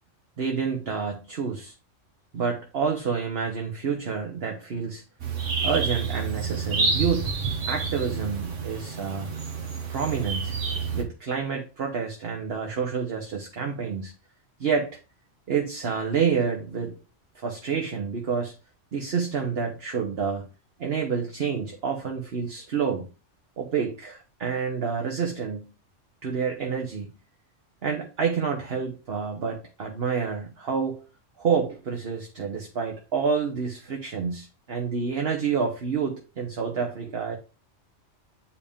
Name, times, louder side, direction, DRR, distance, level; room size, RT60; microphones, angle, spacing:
voice 1, 0.4-1.7 2.3-5.0 5.6-7.3 7.7-9.3 9.9-10.6 10.9-14.1 14.6-15.0 15.5-16.9 17.3-18.5 18.9-20.5 20.8-23.1 23.6-25.7 26.2-27.1 27.8-31.0 31.4-37.4, right 6 dB, 55° right, 2 dB, 1.2 m, -28 dB
sound 1, 5.2-11.0, right 5 dB, 80° right, 1.6 m, -29 dB
8.6 x 4.8 x 3.5 m, 0.32 s
omnidirectional pair, 1.2 m